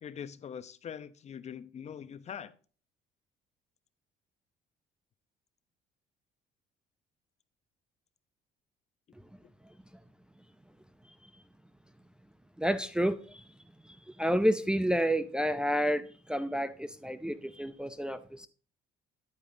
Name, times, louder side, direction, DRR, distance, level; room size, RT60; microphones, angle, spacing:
voice 1, 0.0-2.5, left 8 dB, 40° left, 0.7 m, -43 dB
voice 2, 12.6-13.5 13.9-18.5, equal, 5° right, 0.5 m, -30 dB
9.6 x 8.5 x 2.7 m
cardioid pair, 110°, 17 cm